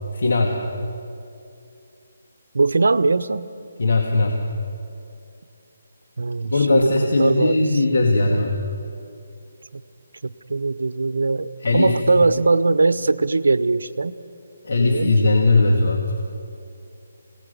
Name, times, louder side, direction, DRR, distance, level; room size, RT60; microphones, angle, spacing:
voice 1, 0.1-0.6 3.8-4.4 6.5-8.6 11.6-12.0 14.6-16.1, left 2 dB, 65° left, 1 dB, 2.2 m, -19 dB
voice 2, 2.5-3.5 6.2-6.8 7.2-7.6 7.9-8.1 9.7-9.8 10.5-14.1 14.8-15.3, right 3 dB, 85° right, 11 dB, 0.8 m, -20 dB
28.0 x 18.0 x 6.9 m, 2.6 s
hypercardioid pair, 165°, 0 cm